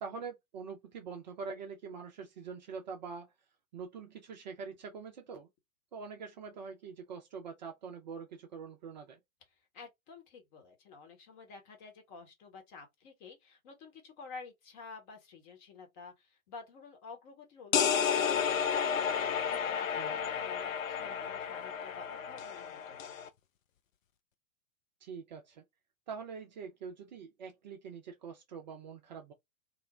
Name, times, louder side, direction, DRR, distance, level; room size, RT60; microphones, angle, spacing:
voice 1, 0.0-3.3 3.7-5.5 5.9-9.2 20.0-20.2 25.0-25.6 26.1-29.3, right 5 dB, 35° right, 0.4 m, -44 dB
voice 2, 9.7-18.6 19.1-23.1, left 4 dB, 30° left, 1.0 m, -51 dB
sound 1, 17.7-23.3, left 7 dB, 70° left, 0.6 m, -32 dB
2.5 x 2.0 x 3.0 m
figure-of-eight pair, 105°, 42 cm